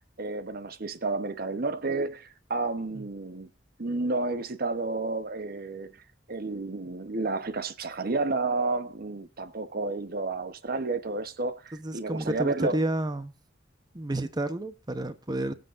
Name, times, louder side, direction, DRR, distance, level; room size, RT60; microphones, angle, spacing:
voice 1, 0.2-3.5 3.8-6.0 6.3-12.8, right 3 dB, 55° right, 0.9 m, -31 dB
voice 2, 11.7-13.3 13.9-15.5, right 1 dB, 20° right, 0.8 m, -30 dB
23.0 x 7.8 x 2.5 m
head